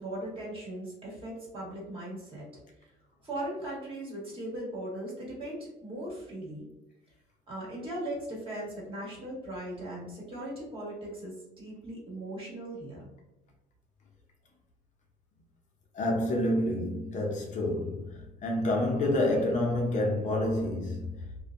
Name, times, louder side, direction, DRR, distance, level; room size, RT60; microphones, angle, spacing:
voice 1, 0.0-2.4 3.2-6.6 7.5-13.1, right 1 dB, 30° right, 1.4 m, -38 dB
voice 2, 15.9-21.2, left 1 dB, 45° left, 0.6 m, -28 dB
2.5 x 2.2 x 2.4 m
cardioid pair, 110°, 17 cm